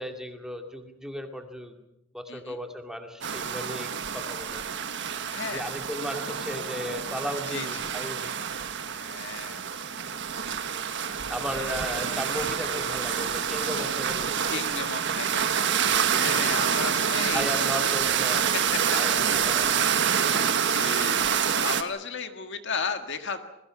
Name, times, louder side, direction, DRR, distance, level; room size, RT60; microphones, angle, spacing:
voice 1, 0.0-1.8 2.1-4.6 5.5-8.3 11.3-14.6 17.3-18.5 18.9-19.9 20.3-20.9, equal, 5° right, 4 dB, 2.3 m, -36 dB
sound 1, 3.2-21.8, right 7 dB, 60° right, 1.5 m, -27 dB
voice 2, 5.3-5.7 7.5-7.9 9.0-9.8 14.5-15.5 16.1-17.6 18.7-19.0 19.3-19.4 19.6-23.4, left 5 dB, 60° left, 8 dB, 1.8 m, -35 dB
28.0 x 21.5 x 6.0 m, 0.84 s
head